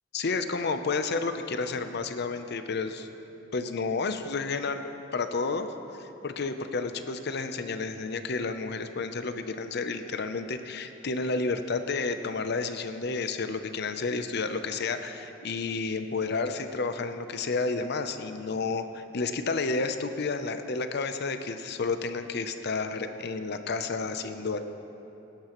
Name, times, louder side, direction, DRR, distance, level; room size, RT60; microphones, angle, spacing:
voice 1, 0.1-3.1 3.5-4.8 5.1-5.7 5.9-24.6, left 4 dB, 60° left, 8 dB, 0.7 m, -31 dB
18.5 x 11.5 x 3.1 m, 2.9 s
head